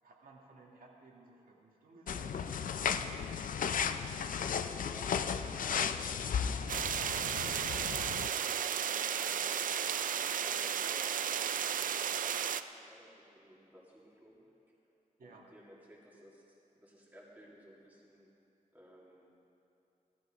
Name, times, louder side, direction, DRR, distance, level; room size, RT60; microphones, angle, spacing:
voice 1, 0.0-3.0 15.2-15.5, right 3 dB, 90° right, -1 dB, 2.1 m, -57 dB
sound 1, 2.1-8.3, left 7 dB, 70° left, 0.5 m, -35 dB
voice 2, 4.4-6.4 7.8-9.7 10.4-14.5 15.2-18.3 18.7-19.4, equal, 10° right, -5 dB, 2.5 m, -58 dB
sound 2, 6.7-12.6, right 8 dB, 70° right, 0.4 m, -34 dB
16.0 x 12.5 x 5.1 m, 2.8 s
wide cardioid pair, 160°, 14 cm